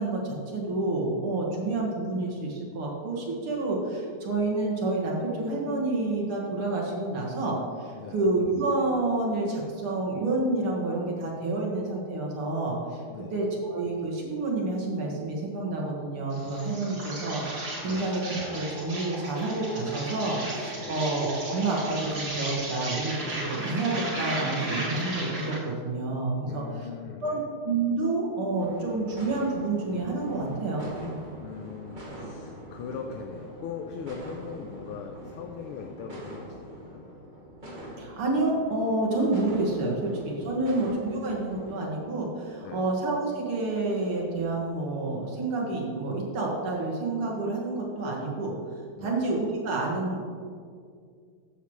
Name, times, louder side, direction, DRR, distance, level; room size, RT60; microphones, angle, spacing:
voice 1, 0.0-13.0 13.3-17.5 17.8-26.6 27.2-27.3 27.6-31.2 38.0-48.5 49.0-50.3, right 2 dB, 75° right, -3 dB, 2.8 m, -29 dB
Insect, 16.3-25.7, right 1 dB, 55° right, 3.3 m, -35 dB
voice 2, 26.4-27.4 31.4-37.0 40.4-40.8 42.6-42.9 49.0-49.2, left 6 dB, 85° left, 3 dB, 1.6 m, -40 dB
sound 1, 28.6-41.8, equal, 25° right, 1.5 m, -43 dB
14.5 x 8.2 x 3.2 m, 2.2 s
omnidirectional pair, 2.4 m